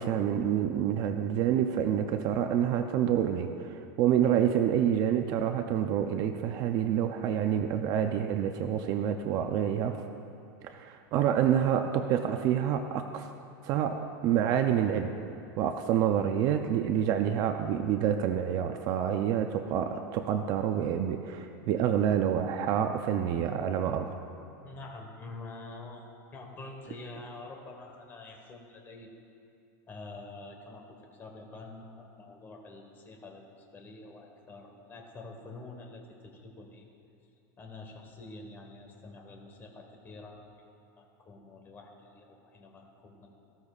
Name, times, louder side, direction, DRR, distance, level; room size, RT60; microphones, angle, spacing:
voice 1, 0.0-10.0 10.6-13.3 13.6-15.1 15.6-24.2, right 9 dB, 35° right, 6 dB, 0.5 m, -28 dB
voice 2, 24.6-29.1 29.9-30.9 31.1-33.5 33.7-36.9 37.6-40.4 41.0-43.3, left 2 dB, 20° left, 2 dB, 1.3 m, -47 dB
18.5 x 14.0 x 2.4 m, 2.6 s
supercardioid pair, 165°, 11 cm